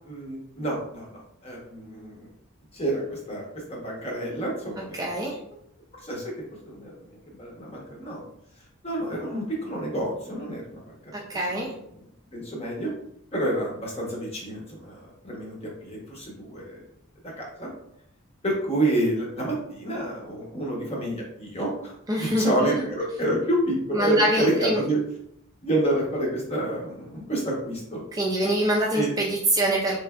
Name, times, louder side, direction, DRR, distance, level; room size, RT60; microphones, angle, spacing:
voice 1, 0.0-2.3 2.7-5.1 5.9-6.3 6.6-8.2 8.8-11.4 12.3-12.9 13.3-16.8 17.2-17.7 18.4-25.0 25.6-28.0 28.9-29.1, right 1 dB, 25° left, -2 dB, 0.9 m, -29 dB
voice 2, 4.9-5.4 11.1-11.7 22.1-22.8 23.9-24.8 28.1-30.0, right 1 dB, 15° right, -3 dB, 0.4 m, -24 dB
3.8 x 3.2 x 2.3 m, 0.74 s
head